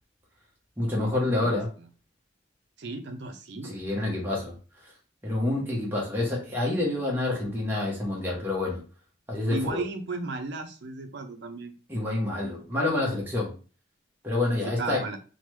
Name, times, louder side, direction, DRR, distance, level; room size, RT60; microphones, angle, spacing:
voice 1, 0.8-1.7 3.6-4.5 5.2-8.8 9.3-9.8 11.9-13.5 14.2-15.0, left 2 dB, 10° right, -3 dB, 0.7 m, -27 dB
voice 2, 1.4-1.9 2.8-3.7 9.5-11.7 14.6-15.2, right 3 dB, 60° right, 6 dB, 0.5 m, -35 dB
3.1 x 2.1 x 3.0 m, 0.37 s
head